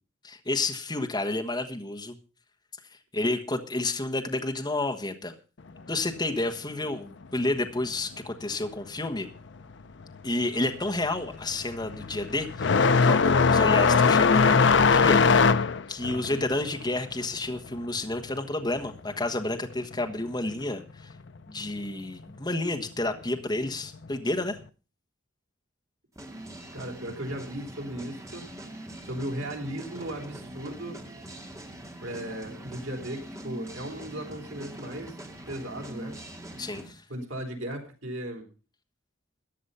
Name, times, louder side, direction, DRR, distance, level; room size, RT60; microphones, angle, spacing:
voice 1, 0.2-2.2 3.1-5.3 5.9-9.3 10.2-12.7 13.0-15.4 15.9-21.1 21.5-24.6 36.6-37.0, left 2 dB, 20° left, 4 dB, 1.3 m, -30 dB
sound 1, 10.0-10.3 10.6-19.0 19.3-20.3 21.3-21.4 22.2-22.3 24.0-24.2, left 5 dB, 60° left, 0.6 m, -21 dB
voice 2, 16.1-16.4 26.7-28.5 29.0-31.0 32.0-35.2 35.5-36.2 37.1-38.5, right 1 dB, 80° right, 2 dB, 3.9 m, -36 dB
sound 2, 26.2-36.9, right 1 dB, 15° right, 1.9 m, -43 dB
15.0 x 10.0 x 5.6 m, 0.36 s
head